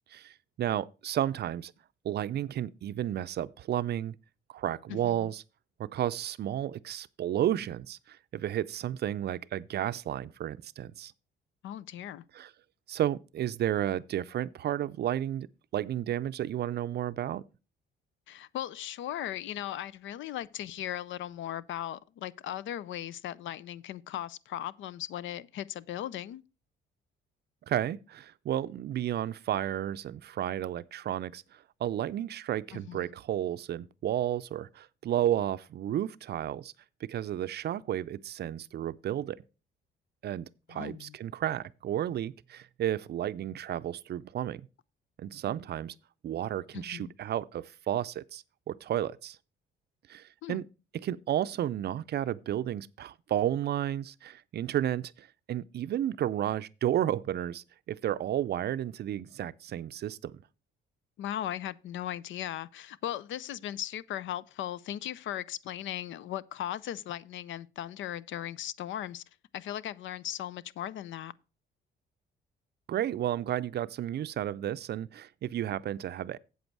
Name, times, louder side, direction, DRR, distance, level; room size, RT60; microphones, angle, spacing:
voice 1, 0.1-1.7 2.0-4.2 4.5-5.4 5.8-11.1 12.3-12.5 12.9-15.5 15.7-17.4 27.7-36.7 37.1-39.4 40.2-44.7 45.2-45.9 46.2-49.4 50.1-50.6 51.0-60.4 72.9-76.4, right 11 dB, 55° right, 0.4 m, -32 dB
voice 2, 4.9-5.3 11.6-12.2 18.3-26.4 32.7-33.1 40.7-41.2 46.7-47.1 50.4-50.6 61.2-69.2 69.5-71.3, left 12 dB, 75° left, 0.5 m, -38 dB
8.0 x 7.9 x 4.6 m
cardioid pair, 90°, 20 cm